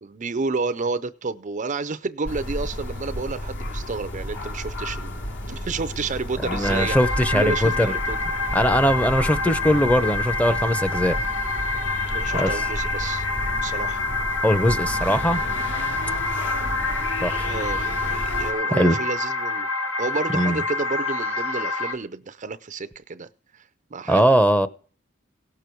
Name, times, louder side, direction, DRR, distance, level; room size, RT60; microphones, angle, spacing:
voice 1, 0.0-5.1 5.4-7.0 7.3-8.2 12.1-13.3 13.6-14.1 17.4-19.7 20.0-23.3 23.5-23.6 23.9-24.3, right 4 dB, 40° right, 0.5 m, -30 dB
sound 1, 2.2-18.5, left 1 dB, 65° left, 2.4 m, -32 dB
voice 2, 6.4-7.9 8.5-11.2 12.3-12.5 14.4-15.4 17.2-17.5 18.7-19.0 20.3-20.6 24.1-24.7, equal, 5° left, 0.8 m, -20 dB
sound 2, 6.6-21.9, left 3 dB, 85° left, 1.7 m, -27 dB
17.5 x 6.8 x 4.6 m
head